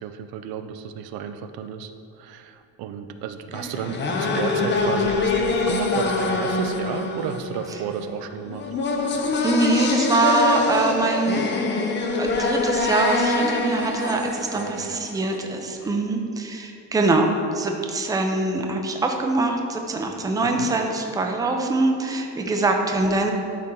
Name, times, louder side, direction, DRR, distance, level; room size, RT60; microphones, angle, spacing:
voice 1, 0.0-8.7 14.5-15.0 20.4-20.7, right 8 dB, 85° right, 9 dB, 0.6 m, -33 dB
sound 1, 3.5-15.4, left 3 dB, 30° left, 0.7 m, -25 dB
voice 2, 9.4-11.5 12.2-23.3, right 2 dB, 10° right, 3 dB, 0.5 m, -23 dB
12.0 x 4.3 x 3.8 m, 2.5 s
cardioid pair, 160°, 35 cm